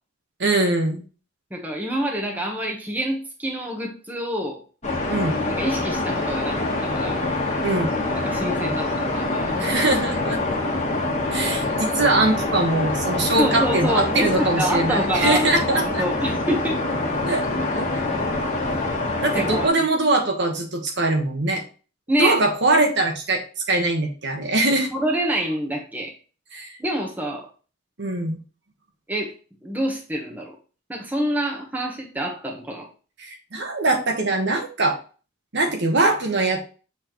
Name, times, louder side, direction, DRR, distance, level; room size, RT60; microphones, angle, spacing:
voice 1, 0.4-1.0 5.1-5.4 7.6-7.9 9.6-10.6 11.3-16.0 17.3-17.5 17.7-17.9 19.2-21.6 22.2-23.4 23.7-24.9 26.5-26.8 28.0-28.4 33.2-35.0 35.5-36.6, right 2 dB, 55° right, 4 dB, 1.3 m, -22 dB
voice 2, 1.5-4.6 5.6-7.2 8.1-9.5 13.4-16.8 19.3-19.9 22.1-22.4 24.9-26.1 26.8-27.5 29.1-29.3 29.6-30.5 30.9-32.9, right 1 dB, 10° right, -1 dB, 1.2 m, -26 dB
sound 1, 4.8-19.7, left 2 dB, 35° left, 1.4 m, -25 dB
7.0 x 4.3 x 3.1 m, 0.36 s
head